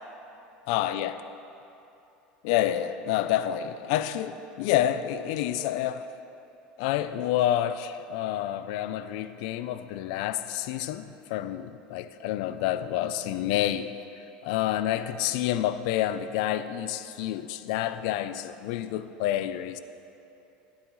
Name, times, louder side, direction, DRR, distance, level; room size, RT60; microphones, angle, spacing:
voice 1, 0.7-1.1 2.4-6.0 6.8-13.9 14.4-19.8, left 12 dB, 75° left, 0.5 m, -28 dB
17.5 x 8.5 x 3.1 m
supercardioid pair, 95°, 4 cm